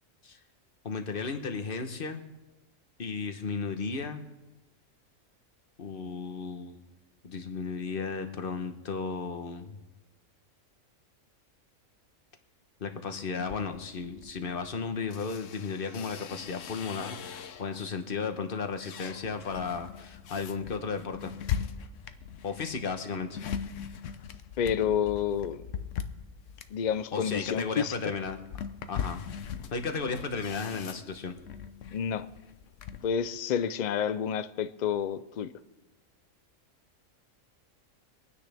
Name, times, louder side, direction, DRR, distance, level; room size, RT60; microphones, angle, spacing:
voice 1, 0.8-2.2 3.0-4.2 5.8-6.8 7.2-9.8 12.8-21.3 22.4-23.4 27.1-28.4 28.9-29.2 29.7-31.3, left 5 dB, 45° left, 6 dB, 1.2 m, -34 dB
sound 1, 13.4-17.9 18.4-33.1, left 8 dB, 65° left, 1.1 m, -40 dB
voice 2, 24.6-25.6 26.7-27.9 31.9-32.3 33.0-35.5, left 8 dB, 90° left, 13 dB, 0.4 m, -29 dB
24.5 x 9.8 x 3.4 m, 1.1 s
omnidirectional pair, 1.4 m